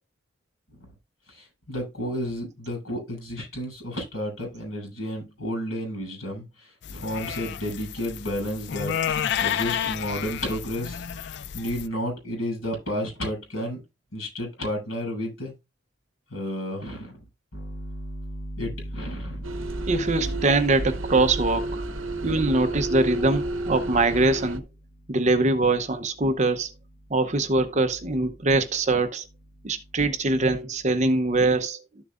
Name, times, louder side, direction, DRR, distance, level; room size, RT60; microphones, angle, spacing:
voice 1, 1.7-6.4 6.9-9.0 9.4-11.0 11.5-13.8 14.1-15.5 16.3-17.2 17.5-20.5, equal, 75° left, 6.9 m, -31 dB
sound 1, 6.8-11.9, left 8 dB, 55° left, 0.4 m, -31 dB
sound 2, 19.4-24.6, right 2 dB, 75° right, 0.9 m, -31 dB
voice 2, 19.9-21.8 22.2-24.6 25.1-26.7 27.1-29.2 29.6-31.8, right 2 dB, 35° right, 0.8 m, -23 dB
13.0 x 7.2 x 2.5 m
head